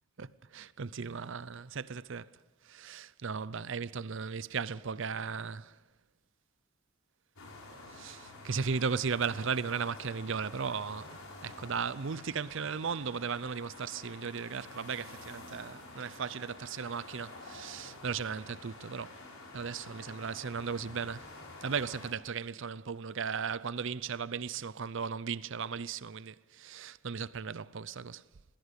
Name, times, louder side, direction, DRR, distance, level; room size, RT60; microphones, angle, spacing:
voice 1, 0.2-2.3 2.6-5.7 7.9-19.2 19.5-21.3 21.6-28.2, right 6 dB, 60° right, 0.6 m, -36 dB
sound 1, 7.4-22.1, left 2 dB, 75° left, 4.9 m, -49 dB
20.5 x 16.5 x 8.2 m
head